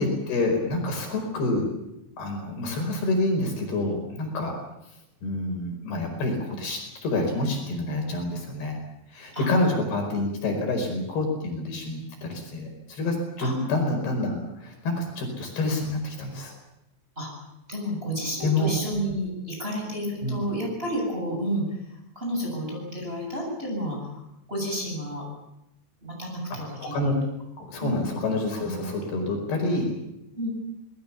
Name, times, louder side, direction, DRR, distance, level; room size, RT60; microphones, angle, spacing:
voice 1, 0.0-1.7 2.2-4.6 5.2-8.8 9.1-16.5 18.4-18.7 20.2-20.4 26.6-27.1 27.6-29.9, left 2 dB, 60° left, 2 dB, 6.8 m, -27 dB
voice 2, 17.7-21.6 22.1-24.0 24.5-25.2 26.0-27.1 27.8-28.0 28.6-28.7 30.3-30.5, equal, 10° right, -1 dB, 8.1 m, -30 dB
27.0 x 20.5 x 7.2 m, 0.85 s
omnidirectional pair, 5.1 m